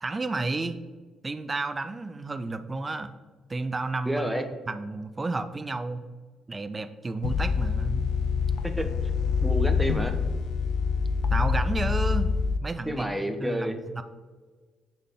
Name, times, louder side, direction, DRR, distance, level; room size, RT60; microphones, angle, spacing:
voice 1, 0.0-0.8 1.2-3.1 3.5-4.3 4.7-6.0 6.5-8.1 11.3-12.3 12.6-14.0, right 3 dB, 25° right, 10 dB, 0.5 m, -31 dB
voice 2, 4.1-4.4 8.8-8.9 9.4-10.1 12.9-13.8, equal, 5° right, 5 dB, 0.9 m, -29 dB
sound 1, 7.2-12.6, left 5 dB, 60° left, 0.4 m, -26 dB
9.6 x 3.8 x 3.6 m, 1.4 s
figure-of-eight pair, 45°, 0 cm